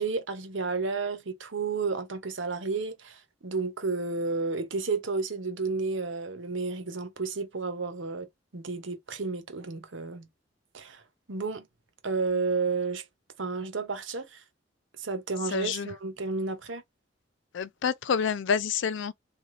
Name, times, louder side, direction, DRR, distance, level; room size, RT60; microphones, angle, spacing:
voice 1, 0.0-8.3 8.5-10.3 10.7-11.0 11.3-11.7 12.0-13.0 13.4-14.4 15.0-16.8, right 4 dB, 75° right, 1.0 m, -31 dB
voice 2, 15.5-15.9 17.5-19.1, left 6 dB, 70° left, 0.4 m, -28 dB
3.8 x 2.5 x 3.2 m
head